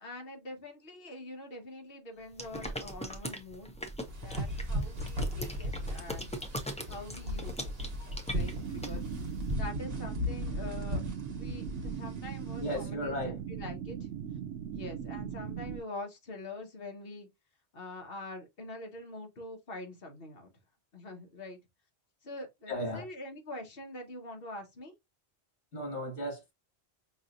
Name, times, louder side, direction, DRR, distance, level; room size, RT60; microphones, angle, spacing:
voice 1, 0.0-3.7 4.2-6.4 6.9-7.8 8.3-9.0 9.6-11.0 11.4-14.1 14.7-17.3 17.7-20.5 20.9-21.6 22.2-24.9, left 2 dB, 55° left, 1.3 m, -44 dB
sound 1, 2.3-9.5, right 1 dB, 10° left, 0.3 m, -40 dB
sound 2, 4.1-12.8, left 1 dB, 60° right, 1.3 m, -37 dB
sound 3, 8.4-15.8, right 8 dB, 90° right, 0.9 m, -39 dB
voice 2, 12.6-13.4 22.7-23.1 25.7-26.5, equal, 85° left, 1.5 m, -35 dB
5.4 x 2.9 x 2.5 m
omnidirectional pair, 1.2 m